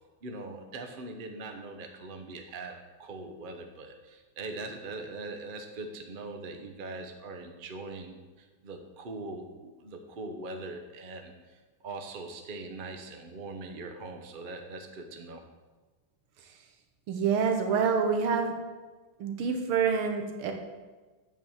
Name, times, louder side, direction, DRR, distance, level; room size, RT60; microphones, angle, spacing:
voice 1, 0.2-15.4, right 3 dB, 50° right, 4 dB, 0.6 m, -41 dB
voice 2, 17.1-18.5 19.2-20.5, right 6 dB, 85° right, 4 dB, 1.9 m, -27 dB
8.3 x 4.9 x 7.1 m, 1.3 s
omnidirectional pair, 2.3 m